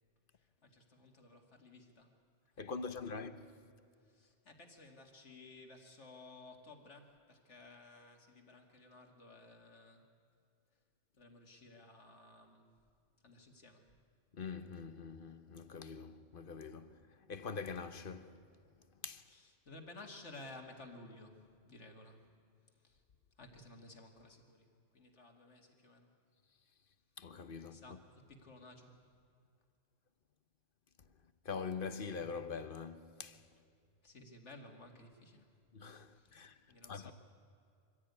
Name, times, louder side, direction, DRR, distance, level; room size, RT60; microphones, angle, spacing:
voice 1, 0.3-2.2 2.5-3.2 4.0-10.1 11.2-12.8 13.2-13.9 19.3-22.3 22.7-23.0 23.4-26.1 27.7-29.1 34.0-35.5 36.1-37.1, left 2 dB, 70° left, 2.6 m, -56 dB
voice 2, 2.6-3.7 14.3-18.6 19.0-19.3 27.2-28.0 31.0-31.1 31.4-33.5 35.7-36.6 36.9-37.1, left 5 dB, 50° left, 1.1 m, -44 dB
24.5 x 15.5 x 9.6 m
omnidirectional pair, 1.2 m